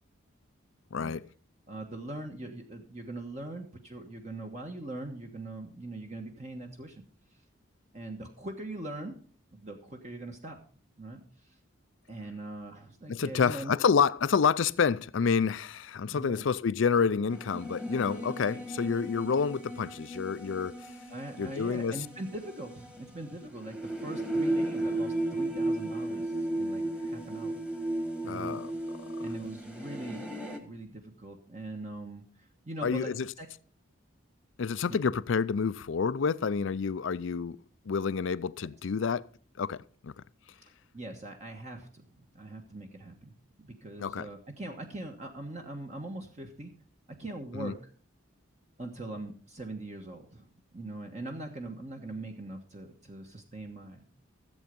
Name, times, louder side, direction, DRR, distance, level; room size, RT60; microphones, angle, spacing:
voice 1, 0.9-1.2 13.1-20.9 21.4-22.0 28.3-28.7 32.8-33.3 34.6-37.6 37.9-39.3 39.6-40.1 44.0-44.3 47.5-47.7, left 6 dB, 70° left, 0.4 m, -28 dB
voice 2, 1.7-7.0 7.9-9.2 9.5-10.6 11.0-11.6 12.1-13.7 16.1-16.5 18.5-18.6 21.1-27.6 28.2-28.6 29.2-30.3 30.6-33.5 34.9-35.0 40.9-46.7 47.1-47.9 48.8-54.0, right 2 dB, 35° right, 1.2 m, -42 dB
sound 1, 17.3-30.6, right 1 dB, 5° right, 1.4 m, -35 dB
14.5 x 8.0 x 5.2 m
head